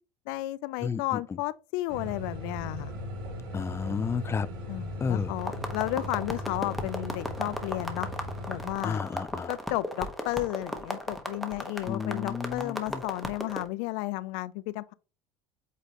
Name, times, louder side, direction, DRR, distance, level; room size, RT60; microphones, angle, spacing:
voice 1, 0.3-2.9 4.7-8.1 8.5-9.1 9.5-14.9, left 18 dB, 75° left, 0.4 m, -33 dB
voice 2, 0.8-1.2 3.5-4.5 5.0-5.3 8.8-9.5 11.9-13.0, left 6 dB, 20° left, 0.5 m, -32 dB
sound 1, 1.9-8.7, left 1 dB, 85° right, 3.0 m, -38 dB
sound 2, 5.4-13.7, equal, ahead, 1.4 m, -36 dB
8.1 x 4.1 x 3.0 m
supercardioid pair, 100°, 12 cm